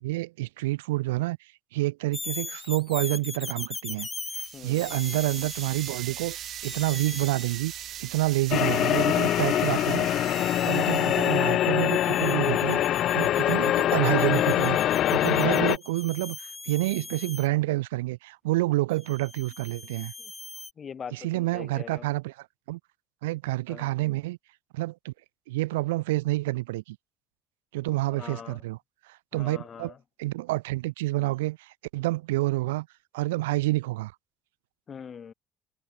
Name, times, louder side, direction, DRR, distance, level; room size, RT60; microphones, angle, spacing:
voice 1, 0.0-4.1 4.3-10.1 10.6-20.1 21.1-22.8 23.2-24.4 24.7-25.1 25.5-27.0 27.7-28.8 29.1-29.9 30.2-32.9 33.1-34.1, right 19 dB, 85° right, 0.5 m, -28 dB
sound 1, 2.1-8.0 10.1-17.5 19.0-20.7, left 3 dB, 25° left, 1.0 m, -41 dB
sound 2, 4.4-11.6, right 11 dB, 60° right, 5.1 m, -40 dB
voice 2, 4.5-4.9 10.6-11.1 20.2-20.3 20.8-22.1 23.7-23.9 28.2-28.6 29.3-30.0 34.9-35.3, left 7 dB, 45° left, 2.0 m, -42 dB
sound 3, 8.5-15.8, left 12 dB, 60° left, 1.0 m, -24 dB
hypercardioid pair, 60°, 0 cm